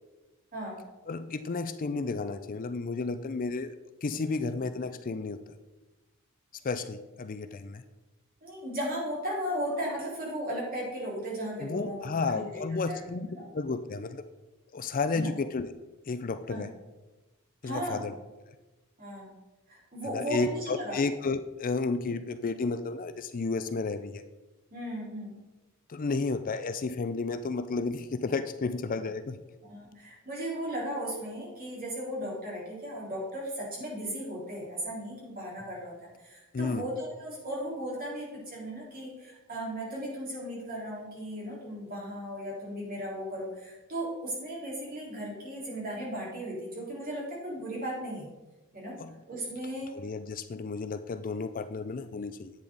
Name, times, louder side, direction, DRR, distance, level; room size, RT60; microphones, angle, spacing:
voice 1, 0.5-0.8 8.4-12.6 12.9-13.0 13.3-13.5 15.1-15.3 16.5-16.6 17.6-18.1 19.0-19.3 19.7-21.0 24.7-25.4 29.7-48.3 48.7-49.0 49.3-49.9, equal, 40° right, -5 dB, 4.0 m, -36 dB
voice 2, 1.1-3.7 4.0-5.4 6.6-7.8 11.6-14.2 14.7-15.7 16.1-16.7 17.6-18.1 20.1-24.2 25.9-29.4 36.5-36.8 49.0-49.1 49.9-52.5, left 4 dB, 40° left, 11 dB, 0.4 m, -32 dB
10.5 x 8.7 x 3.9 m, 1.1 s
head